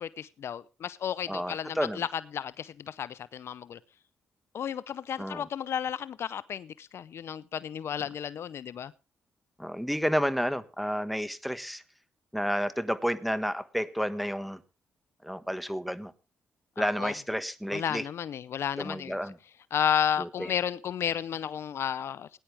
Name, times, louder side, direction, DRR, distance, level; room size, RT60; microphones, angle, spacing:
voice 1, 0.0-3.8 4.5-8.9 16.8-17.1 17.7-19.2 19.7-22.4, left 8 dB, 65° left, 19 dB, 0.6 m, -32 dB
voice 2, 1.3-2.0 5.2-5.4 9.6-11.8 12.3-14.6 15.2-16.1 16.8-18.1 18.8-19.4 20.2-20.5, equal, ahead, 13 dB, 1.4 m, -31 dB
19.0 x 10.5 x 3.4 m, 0.30 s
supercardioid pair, 60°, 5 cm